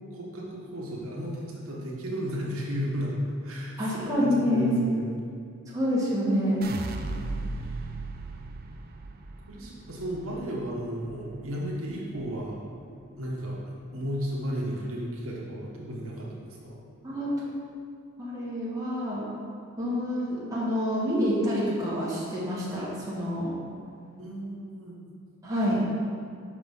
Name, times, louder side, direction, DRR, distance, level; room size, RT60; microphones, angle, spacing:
voice 1, 0.1-3.2 3.4-5.2 7.6-7.8 8.3-8.5 9.5-12.6 13.2-16.8 24.2-25.0, equal, 80° right, -4 dB, 1.2 m, -34 dB
voice 2, 3.8-4.8 5.7-6.6 17.0-17.3 18.2-19.2 19.8-23.5 25.4-25.8, equal, 15° right, -8 dB, 1.5 m, -27 dB
sound 1, 6.6-12.8 13.2-13.8, right 3 dB, 45° right, 0.4 m, -38 dB
5.4 x 5.0 x 5.4 m, 2.2 s
head